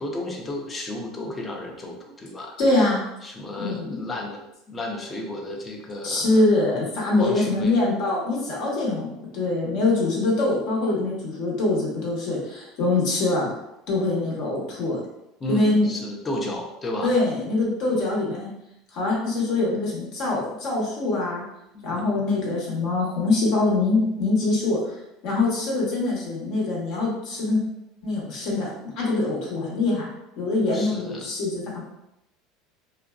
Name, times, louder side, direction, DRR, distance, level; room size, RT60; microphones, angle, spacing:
voice 1, 0.0-2.6 3.2-4.4 4.7-6.4 7.2-7.8 15.4-17.2 21.7-22.2 30.7-31.3, left 1 dB, 25° left, 1 dB, 0.5 m, -32 dB
voice 2, 2.6-3.0 3.6-4.0 6.0-9.1 9.3-13.5 13.9-15.0 15.5-15.9 17.0-18.5 18.9-21.4 21.8-24.9 25.2-27.6 28.0-30.1 30.4-31.8, left 2 dB, 65° left, -3 dB, 0.9 m, -24 dB
2.5 x 2.2 x 2.3 m, 0.86 s
supercardioid pair, 105°, 0 cm